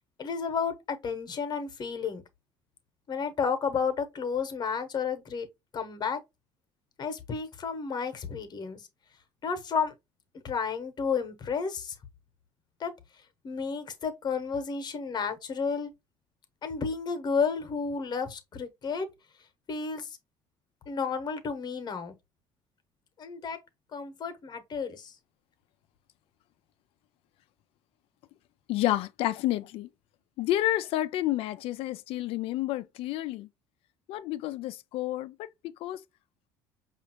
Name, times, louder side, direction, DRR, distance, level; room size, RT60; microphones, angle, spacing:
voice 1, 0.2-2.2 3.1-5.5 5.7-6.2 7.0-8.8 9.4-9.9 10.4-11.9 12.8-12.9 13.4-15.9 16.6-19.1 19.7-20.2 20.9-22.1 23.2-23.6 23.9-25.1, left 5 dB, 45° left, 1.0 m, -32 dB
voice 2, 28.7-29.9 30.4-33.5 34.1-35.5 35.8-36.0, left 15 dB, 65° left, 0.4 m, -30 dB
5.0 x 2.5 x 2.9 m
supercardioid pair, 80°, 10 cm